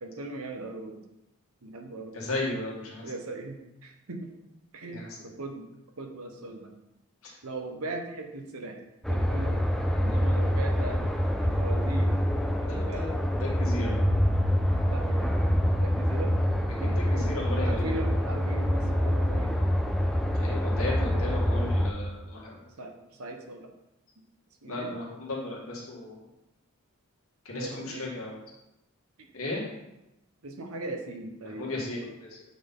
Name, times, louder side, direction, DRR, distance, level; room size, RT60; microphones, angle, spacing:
voice 1, 0.0-1.0 1.6-2.2 3.0-4.3 4.7-5.7 6.0-6.7 7.4-8.8 9.1-11.1 11.4-12.2 12.6-13.1 13.8-13.9 14.8-15.4 15.8-16.4 16.8-17.3 17.6-19.5 22.8-23.7 24.6-24.9 27.5-28.1 29.2-29.3 30.4-31.8, right 2 dB, 80° right, 4 dB, 1.0 m, -39 dB
voice 2, 2.1-3.1 4.8-5.2 7.2-7.3 12.7-13.1 13.4-14.0 16.8-17.9 20.3-22.7 24.7-26.2 27.5-28.4 29.3-29.6 31.6-32.3, left 2 dB, 75° left, -4 dB, 2.1 m, -35 dB
sound 1, 9.0-21.9, equal, ahead, 0.4 m, -26 dB
8.4 x 4.2 x 3.8 m, 0.91 s
head